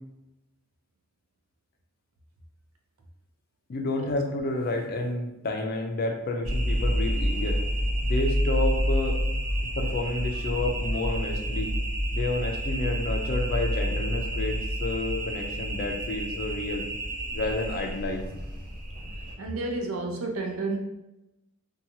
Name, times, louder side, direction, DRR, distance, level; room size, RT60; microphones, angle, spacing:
voice 1, 3.7-7.6 8.0-9.2 9.8-11.7 12.1-16.9 17.3-18.2, left 2 dB, 45° left, 3 dB, 0.4 m, -30 dB
sound 1, 6.4-19.3, equal, 40° right, 1.4 m, -28 dB
voice 2, 19.4-20.8, right 2 dB, 80° right, 2 dB, 0.5 m, -30 dB
2.8 x 2.3 x 2.6 m, 0.94 s
head